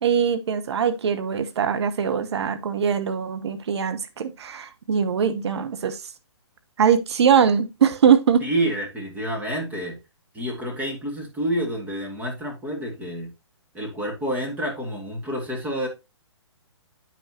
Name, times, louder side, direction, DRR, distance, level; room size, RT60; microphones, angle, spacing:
voice 1, 0.0-6.0 6.8-8.4, right 7 dB, 65° right, 1.0 m, -22 dB
voice 2, 8.4-10.0 10.3-13.3 13.7-15.9, right 1 dB, 10° right, 2.3 m, -28 dB
8.9 x 5.9 x 2.8 m
hypercardioid pair, 130°, 15 cm